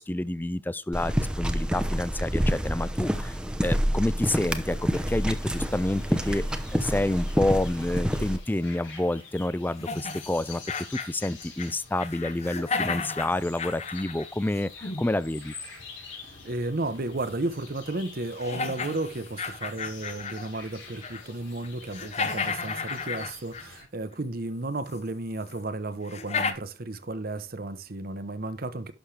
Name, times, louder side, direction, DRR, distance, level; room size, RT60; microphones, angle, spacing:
voice 1, 0.0-10.6 10.9-15.5, left 1 dB, 10° left, 0.4 m, -29 dB
sound 1, 0.9-8.4, equal, 5° right, 0.8 m, -28 dB
sound 2, 4.1-23.8, left 4 dB, 90° left, 4.4 m, -48 dB
sound 3, 9.8-11.7 12.0-15.1 17.2-17.3 17.9-18.0 18.4-20.5 20.9-21.3 21.6-23.8 24.9-25.0 25.5-25.6 26.1-26.5, left 4 dB, 35° left, 0.9 m, -33 dB
voice 2, 16.4-28.9, right 2 dB, 50° right, 0.9 m, -33 dB
11.5 x 6.5 x 3.3 m
head